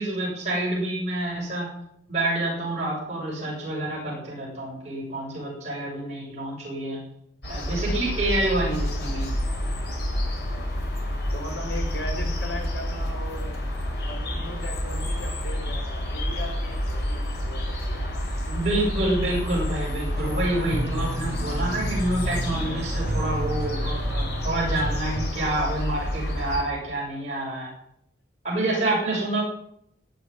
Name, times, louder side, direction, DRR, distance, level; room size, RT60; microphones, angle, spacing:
voice 1, 0.0-1.7 2.1-7.0 7.5-9.3 18.5-27.7 28.4-29.4, right 1 dB, 35° right, -5 dB, 7.3 m, -28 dB
sound 1, 7.4-26.6, equal, 60° left, 5.4 m, -29 dB
voice 2, 11.3-13.6 14.0-17.6 17.9-18.3, left 1 dB, 80° left, 1 dB, 6.1 m, -38 dB
sound 2, 20.2-25.3, right 1 dB, 50° right, 1.0 m, -33 dB
16.0 x 8.7 x 10.0 m, 0.73 s
head